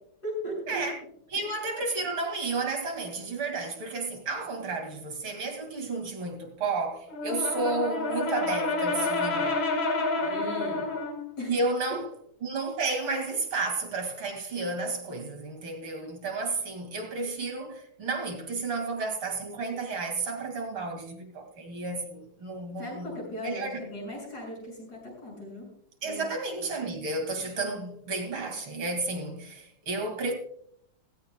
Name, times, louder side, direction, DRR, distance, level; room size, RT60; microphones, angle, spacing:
voice 1, 0.2-0.8 10.2-11.0 11.4-11.6 22.8-25.7 26.0-26.3, left 1 dB, 50° left, 7.5 m, -37 dB
voice 2, 1.3-9.6 11.5-12.1 12.4-23.8 26.0-30.3, right 3 dB, 70° right, 3.1 m, -32 dB
Brass instrument, 7.1-11.3, left 2 dB, 65° left, 2.7 m, -29 dB
16.5 x 16.5 x 2.3 m
omnidirectional pair, 2.3 m